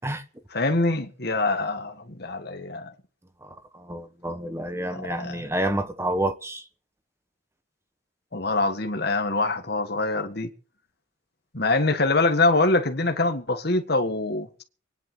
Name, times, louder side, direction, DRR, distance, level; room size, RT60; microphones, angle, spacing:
voice 1, 0.5-2.9 4.9-5.5 8.3-10.5 11.5-14.5, left 2 dB, 55° left, 1.8 m, -24 dB
voice 2, 3.4-6.6, right 1 dB, 15° right, 1.3 m, -29 dB
22.5 x 10.0 x 6.3 m
head